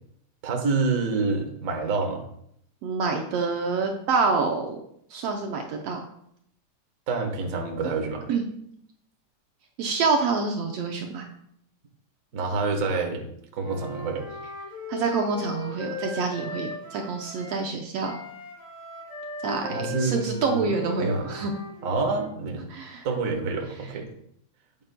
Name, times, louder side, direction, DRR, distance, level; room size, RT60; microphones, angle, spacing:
voice 1, 0.4-2.2 7.1-8.3 12.3-13.3 13.5-14.3 19.7-20.7 21.0-21.3 21.8-22.6 23.0-24.1, right 4 dB, 55° right, 2 dB, 0.9 m, -27 dB
voice 2, 2.8-4.8 5.1-6.0 8.3-8.4 9.8-11.3 14.9-18.2 19.4-21.5 22.7-23.1, right 4 dB, 70° right, 3 dB, 1.6 m, -27 dB
Wind instrument woodwind instrument, 13.6-17.7 18.0-22.2, left 3 dB, 20° left, 1.9 m, -38 dB
9.1 x 8.8 x 2.2 m, 0.71 s
omnidirectional pair, 3.3 m